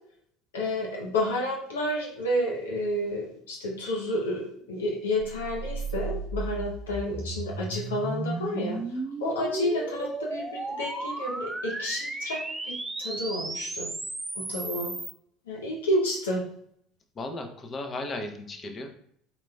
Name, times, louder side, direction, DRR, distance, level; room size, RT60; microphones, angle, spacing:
voice 1, 0.5-8.8 9.2-13.9 14.3-14.9 15.5-16.4, left 1 dB, 85° left, -1 dB, 0.7 m, -30 dB
sound 1, 5.2-15.1, right 2 dB, 15° right, 0.6 m, -34 dB
voice 2, 17.1-19.0, left 2 dB, 35° left, 6 dB, 0.8 m, -35 dB
4.4 x 4.0 x 2.3 m, 0.68 s
hypercardioid pair, 70°, 0 cm